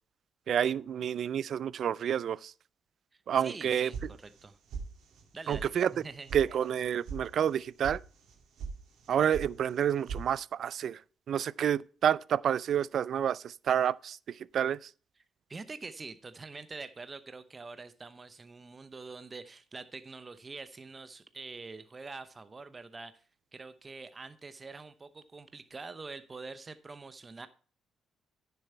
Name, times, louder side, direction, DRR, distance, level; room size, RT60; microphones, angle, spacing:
voice 1, 0.5-2.5 3.3-3.9 5.5-5.9 6.3-8.0 9.1-11.0 11.3-14.9, right 9 dB, 65° right, 0.3 m, -29 dB
voice 2, 3.4-4.6 5.3-6.3 15.5-23.2 23.5-27.5, right 4 dB, 30° right, 0.8 m, -45 dB
sound 1, 3.9-4.4 4.7-5.2 5.5-5.6 6.0-6.4 6.7-7.2 7.5-7.9 8.3-8.7 9.0-9.5 9.7-10.2, right 5 dB, 80° right, 2.5 m, -39 dB
10.0 x 6.9 x 4.4 m
cardioid pair, 90°, 0 cm